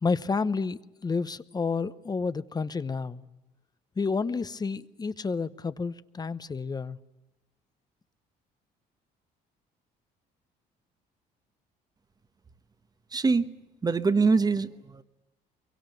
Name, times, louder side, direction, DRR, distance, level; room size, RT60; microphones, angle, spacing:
voice 1, 0.0-3.2 4.0-7.0, left 4 dB, 25° left, 0.9 m, -30 dB
voice 2, 13.1-13.5 13.8-15.0, right 4 dB, 25° right, 1.1 m, -24 dB
23.5 x 23.0 x 9.2 m
cardioid pair, 110°, 17 cm